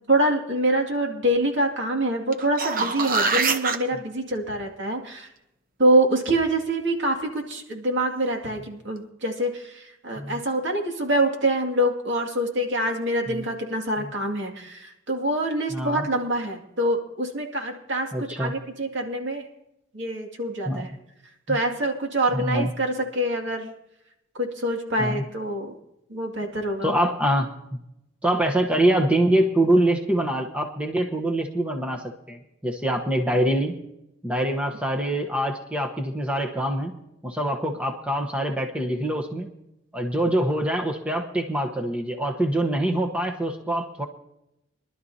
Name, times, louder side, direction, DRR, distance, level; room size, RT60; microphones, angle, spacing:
voice 1, 0.1-5.3 5.8-19.5 19.9-20.9 21.5-23.7 24.3-25.8 26.1-26.9, right 1 dB, 65° right, 2 dB, 2.4 m, -25 dB
sound 1, 2.3-3.8 8.6-8.7, right 4 dB, 45° right, 0.9 m, -24 dB
voice 2, 15.7-16.0 18.1-18.5 20.7-20.8 21.5-21.6 22.3-22.7 25.0-25.2 26.8-27.5 28.2-33.7 34.2-36.9 37.2-39.5 39.9-44.1, right 1 dB, 5° right, 2 dB, 1.0 m, -24 dB
23.5 x 12.0 x 2.8 m, 0.84 s
head